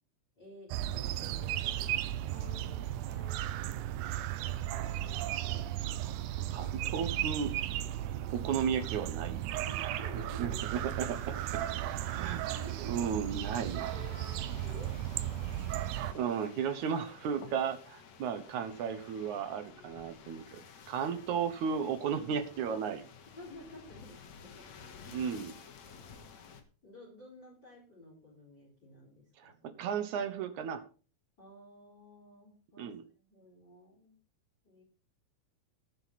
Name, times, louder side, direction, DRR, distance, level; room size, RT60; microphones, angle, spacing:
voice 1, 0.4-3.9 4.5-5.6 9.6-11.0 11.3-13.2 13.4-14.9 15.9-16.0 19.2-20.0 22.7-22.8 23.4-25.2 26.8-29.8 31.4-32.9 33.2-34.2 34.6-34.8, left 2 dB, 25° left, -3 dB, 4.7 m, -53 dB
sound 1, 0.7-16.1, right 13 dB, 90° right, 1.7 m, -35 dB
voice 2, 6.5-7.5 8.3-9.4 10.4-11.2 12.0-12.4 12.8-13.8 16.1-20.6 20.9-23.0 25.1-25.5 29.4-29.5 29.8-30.8 32.8-33.0, right 7 dB, 65° right, 8 dB, 2.2 m, -34 dB
sound 2, 10.7-26.6, left 6 dB, 60° left, 2.3 m, -53 dB
18.5 x 6.5 x 4.2 m, 0.38 s
omnidirectional pair, 4.4 m